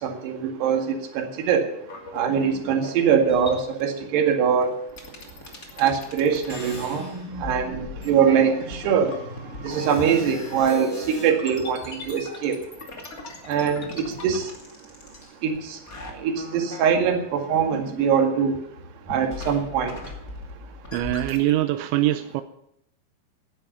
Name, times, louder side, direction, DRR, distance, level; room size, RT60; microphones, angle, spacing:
voice 1, 0.0-0.8 1.2-1.6 2.1-4.7 5.8-7.0 7.4-9.2 9.6-12.6 13.5-14.5 15.4-15.8 16.2-18.6 19.1-20.0, right 7 dB, 70° right, 4 dB, 4.0 m, -22 dB
sound 1, 1.8-3.8 4.6-4.7 4.9-15.6 15.9-18.5 18.8-21.5, left 2 dB, 25° left, 2.0 m, -39 dB
voice 2, 20.9-22.4, right 15 dB, 90° right, 9 dB, 3.1 m, -23 dB
18.0 x 11.0 x 5.7 m, 0.73 s
omnidirectional pair, 5.2 m